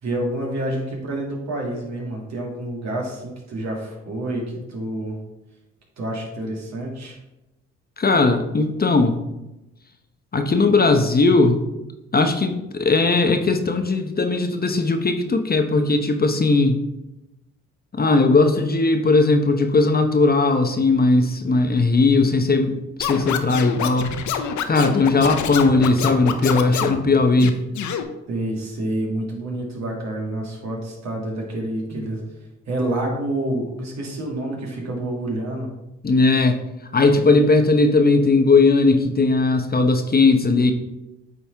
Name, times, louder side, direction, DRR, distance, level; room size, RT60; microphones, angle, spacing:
voice 1, 0.0-4.4 4.7-5.2 6.0-7.2 28.3-32.2 32.7-35.7, right 1 dB, 60° right, -2 dB, 2.3 m, -28 dB
voice 2, 8.0-9.2 10.3-11.6 12.1-16.8 17.9-24.1 24.6-27.6 36.0-36.6 36.9-40.7, left 3 dB, 30° left, 5 dB, 0.9 m, -18 dB
Scratching (performance technique), 23.0-27.0 27.4-28.0, left 8 dB, 75° left, 0.7 m, -26 dB
8.6 x 4.2 x 3.4 m, 0.94 s
supercardioid pair, 60°, 30 cm